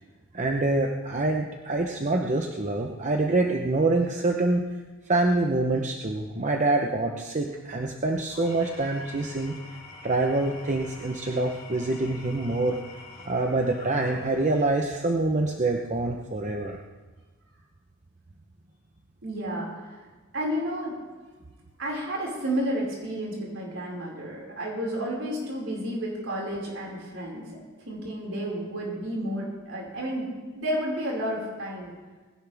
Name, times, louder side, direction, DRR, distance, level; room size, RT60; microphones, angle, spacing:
voice 1, 0.3-4.6 5.1-9.6 10.0-12.8 13.2-16.8, right 2 dB, 35° right, 2 dB, 0.9 m, -26 dB
Engine / Tools, 8.2-14.7, left 3 dB, 45° left, 3.1 m, -46 dB
voice 2, 19.2-20.0 20.3-20.9 21.8-27.4 27.9-30.3 30.5-31.9, equal, 65° right, -3 dB, 5.4 m, -31 dB
20.5 x 16.5 x 3.5 m, 1.3 s
head